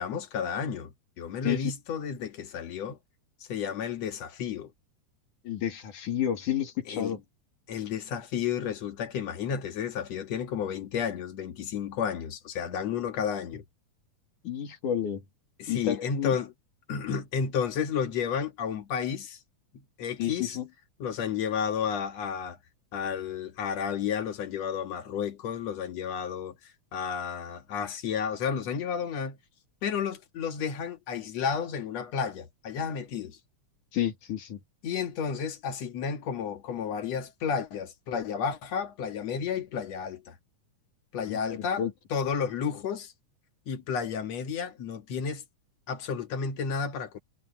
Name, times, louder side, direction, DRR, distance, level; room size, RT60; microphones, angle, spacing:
voice 1, 0.0-3.0 3.5-4.7 6.9-7.2 7.7-13.6 15.6-16.5 16.9-19.4 19.7-20.6 21.0-22.6 22.9-26.5 26.9-29.4 29.8-33.4 34.8-40.4 41.1-41.9 42.1-43.1 43.7-45.4 45.9-47.2, left 7 dB, 60° left, 2.5 m, -32 dB
voice 2, 5.4-7.2 14.4-15.2 15.7-16.3 20.2-20.7 33.9-34.6 41.3-41.9, left 10 dB, 75° left, 3.9 m, -30 dB
omnidirectional pair, 3.6 m